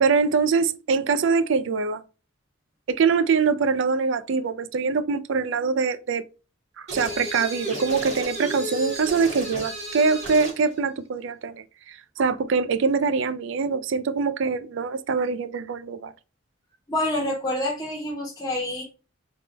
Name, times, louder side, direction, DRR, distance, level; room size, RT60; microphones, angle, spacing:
voice 1, 0.0-2.0 2.9-6.2 6.8-16.1, right 5 dB, 65° right, 0.4 m, -24 dB
sound 1, 6.9-10.6, equal, 35° right, 2.0 m, -33 dB
voice 2, 16.9-18.8, left 1 dB, 20° left, 1.1 m, -27 dB
3.9 x 3.5 x 3.3 m
head